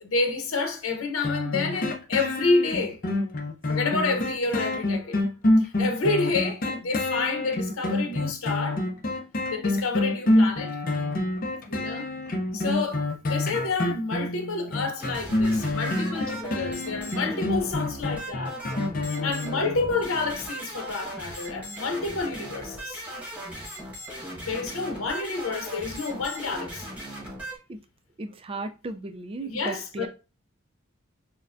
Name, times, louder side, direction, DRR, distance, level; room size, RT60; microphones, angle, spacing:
voice 1, 0.0-3.0 3.7-5.2 5.6-8.8 9.5-10.8 11.7-12.1 12.5-18.6 19.1-23.0 24.5-26.9 29.4-30.1, left 3 dB, 80° left, 0.9 m, -29 dB
sound 1, 1.2-19.9 20.4-20.5, left 1 dB, 45° left, 0.6 m, -27 dB
sound 2, 15.0-27.6, right 1 dB, 5° right, 1.2 m, -38 dB
voice 2, 28.2-30.1, right 2 dB, 25° right, 0.3 m, -35 dB
6.5 x 2.2 x 2.5 m
head